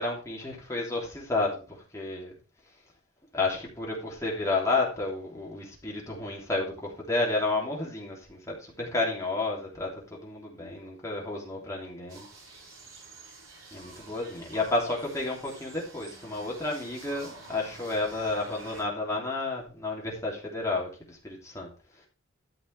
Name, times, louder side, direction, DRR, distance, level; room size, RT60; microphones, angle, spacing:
voice 1, 0.0-2.3 3.3-12.2 13.7-22.1, left 2 dB, 15° left, -3 dB, 3.1 m, -31 dB
sound 1, 12.1-18.8, right 2 dB, 85° right, 4.4 m, -49 dB
13.0 x 5.6 x 4.7 m, 0.34 s
head